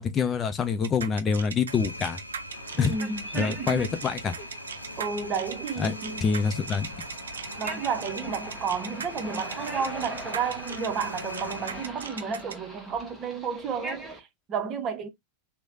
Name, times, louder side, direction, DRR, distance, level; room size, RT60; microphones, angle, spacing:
voice 1, 0.0-2.2 2.7-2.9 3.3-4.3 5.8-5.9 6.2-6.9, left 6 dB, 25° left, 0.5 m, -26 dB
sound 1, 0.8-12.5, right 7 dB, 70° right, 0.5 m, -38 dB
sound 2, 1.7-11.9, left 1 dB, 85° left, 0.4 m, -41 dB
sound 3, 2.5-14.2, right 1 dB, ahead, 1.0 m, -42 dB
voice 2, 2.8-3.9 5.0-6.3 7.6-15.1, right 6 dB, 30° right, 0.7 m, -32 dB
3.1 x 2.0 x 2.6 m
figure-of-eight pair, 90°, 0 cm